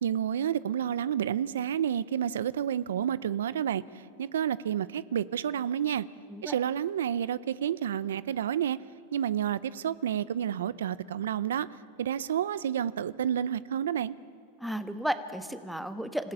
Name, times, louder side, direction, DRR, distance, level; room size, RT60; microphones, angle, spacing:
voice 1, 0.0-6.1 6.4-8.8 9.1-11.7 12.0-14.1, right 9 dB, 90° right, 18 dB, 0.7 m, -30 dB
voice 2, 14.6-16.3, equal, ahead, 10 dB, 1.3 m, -33 dB
26.5 x 15.5 x 9.9 m, 2.5 s
supercardioid pair, 135°, 0 cm